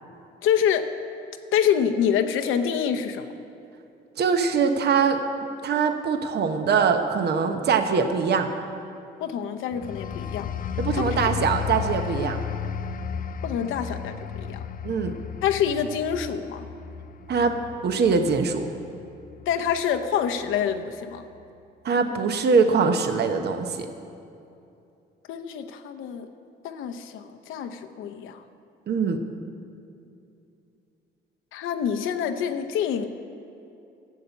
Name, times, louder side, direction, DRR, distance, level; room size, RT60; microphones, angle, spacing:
voice 1, 0.4-0.9 1.5-3.3 9.2-10.5 10.9-11.0 13.4-14.6 15.4-16.7 19.5-21.2 25.3-26.3 26.6-28.4 31.5-33.1, left 8 dB, 85° left, 6 dB, 0.8 m, -26 dB
voice 2, 4.2-5.2 5.6-8.5 10.8-12.4 14.8-15.1 17.3-17.6 17.8-18.7 21.8-23.9 28.9-29.2, right 5 dB, 55° right, 7 dB, 0.9 m, -22 dB
sound 1, 9.7-20.1 20.5-20.8, left 8 dB, 45° left, 0.5 m, -34 dB
11.5 x 7.2 x 8.2 m, 2.7 s
cardioid pair, 90°, 20 cm